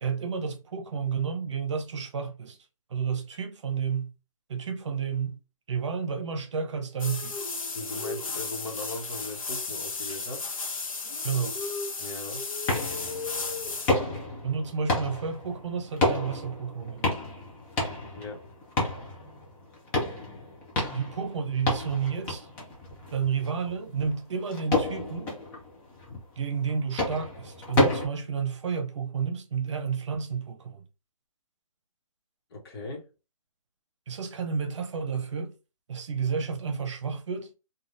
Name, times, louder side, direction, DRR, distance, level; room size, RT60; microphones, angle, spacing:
voice 1, 0.0-2.6 2.9-4.1 4.5-5.4 5.7-7.4 11.2-11.6 14.4-17.1 20.9-22.5 23.1-25.3 26.4-30.9 34.1-35.5 35.9-37.5, right 6 dB, 60° right, 0.8 m, -31 dB
sound 1, 7.0-13.9, left 4 dB, 75° left, 1.0 m, -34 dB
voice 2, 7.7-10.4 12.0-12.4 18.1-18.4 32.5-33.0, left 2 dB, 45° left, 1.1 m, -38 dB
sound 2, 12.7-28.1, left 2 dB, 10° left, 0.4 m, -31 dB
3.4 x 2.3 x 2.6 m
hypercardioid pair, 165°, 18 cm